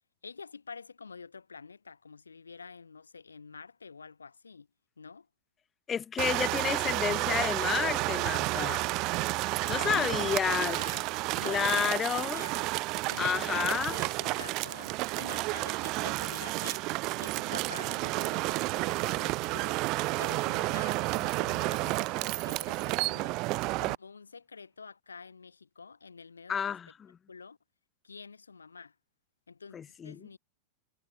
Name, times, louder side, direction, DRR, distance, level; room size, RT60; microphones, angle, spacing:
voice 1, 0.2-4.7 5.0-5.3 9.6-10.2 10.5-11.0 11.4-12.6 13.1-16.9 17.2-19.8 20.2-23.4 23.8-26.8 27.3-27.6 28.0-28.9 29.5-30.4, left 5 dB, 75° left, 1.4 m, -47 dB
voice 2, 5.9-8.9 9.7-10.8 11.4-12.4 13.2-14.0 26.5-26.9 29.7-30.2, left 7 dB, 20° left, 0.3 m, -30 dB
sound 1, 6.2-23.9, right 23 dB, 40° right, 0.4 m, -31 dB
Crash cymbal, 16.2-22.2, right 6 dB, 20° right, 2.8 m, -59 dB
figure-of-eight pair, 90°, 0 cm